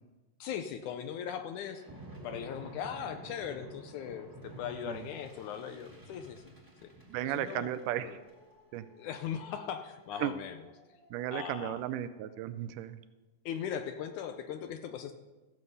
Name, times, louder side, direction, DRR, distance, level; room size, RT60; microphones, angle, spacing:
voice 1, 0.4-1.8 2.2-6.4 6.8-6.9 7.2-7.7 8.0-8.2 9.0-10.7 11.3-11.8 13.5-15.1, left 8 dB, 75° left, 8 dB, 1.9 m, -39 dB
sound 1, 1.7-12.3, right 1 dB, 10° right, 0.9 m, -52 dB
voice 2, 7.1-8.1 8.7-8.8 10.2-10.3 11.1-13.0, right 12 dB, 80° right, 12 dB, 2.0 m, -35 dB
15.0 x 7.6 x 5.5 m, 1.1 s
omnidirectional pair, 3.9 m